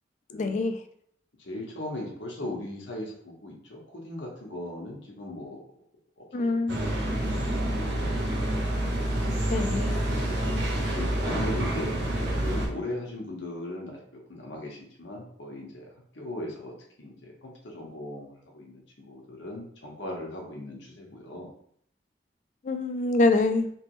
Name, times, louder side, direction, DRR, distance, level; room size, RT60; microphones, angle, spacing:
voice 1, 0.3-0.8 6.3-6.8 9.5-9.9 22.6-23.7, left 2 dB, 40° left, 7 dB, 0.3 m, -25 dB
voice 2, 1.4-5.6 6.2-7.7 9.9-10.0 10.4-15.9 16.1-21.5, left 1 dB, 85° left, -2 dB, 1.0 m, -39 dB
sound 1, 6.7-12.7, right 1 dB, 70° right, 0.9 m, -28 dB
3.3 x 3.0 x 3.0 m, 0.65 s
head